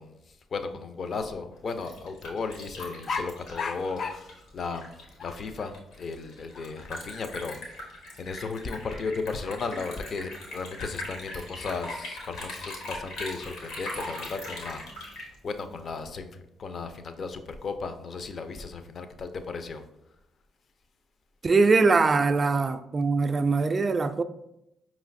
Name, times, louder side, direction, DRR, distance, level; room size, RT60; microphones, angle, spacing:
voice 1, 0.0-19.8 22.6-22.8, left 4 dB, 55° left, 0.4 m, -35 dB
Liquid, 1.5-16.1, left 2 dB, 85° left, 1.1 m, -41 dB
voice 2, 21.4-24.2, right 4 dB, 40° right, 0.3 m, -22 dB
5.0 x 3.0 x 2.6 m
supercardioid pair, 60°, 0 cm